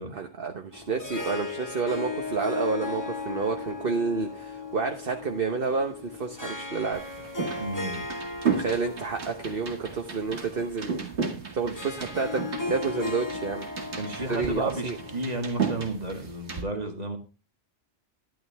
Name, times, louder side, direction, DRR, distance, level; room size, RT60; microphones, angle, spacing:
voice 1, 0.1-7.0 8.5-11.1 11.5-12.4 12.7-13.7 14.1-15.0, right 4 dB, 55° right, 3 dB, 1.3 m, -29 dB
Harp, 0.7-16.0, left 3 dB, 15° left, 1.5 m, -37 dB
sound 1, 6.9-16.6, right 6 dB, 75° right, 2.0 m, -34 dB
voice 2, 7.6-8.0 13.9-17.2, right 2 dB, 35° right, 5 dB, 2.0 m, -32 dB
11.5 x 11.5 x 3.5 m, 0.32 s
omnidirectional pair, 1.2 m